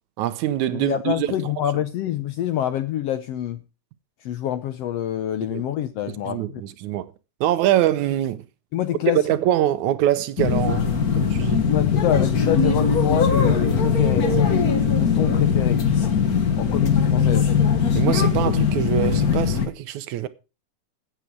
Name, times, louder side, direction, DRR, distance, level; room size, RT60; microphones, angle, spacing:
voice 1, 0.2-1.3 5.5-5.6 6.3-7.1 7.4-8.4 9.3-11.6 18.0-20.3, right 12 dB, 75° right, 2.0 m, -24 dB
voice 2, 0.7-3.6 4.2-6.6 8.7-9.2 11.7-14.4 15.0-15.8 16.6-17.5, left 11 dB, 75° left, 1.5 m, -26 dB
sound 1, 10.4-19.7, left 6 dB, 40° left, 1.4 m, -20 dB
15.5 x 8.2 x 4.6 m
omnidirectional pair, 3.5 m